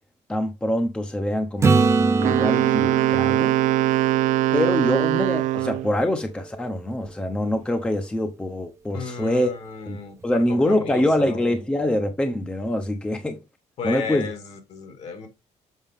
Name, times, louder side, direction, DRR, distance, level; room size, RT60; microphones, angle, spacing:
voice 1, 0.3-3.6 4.5-9.5 9.9-13.4 13.8-14.3, left 1 dB, 10° left, 0.8 m, -24 dB
Acoustic guitar / Strum, 1.6-5.4 10.2-10.3, right 4 dB, 25° right, 0.7 m, -24 dB
Wind instrument woodwind instrument, 2.2-5.9, right 15 dB, 85° right, 0.4 m, -21 dB
voice 2, 8.9-11.4 13.8-15.3, left 4 dB, 60° left, 2.2 m, -34 dB
7.3 x 4.7 x 3.5 m
cardioid pair, 150°, 12 cm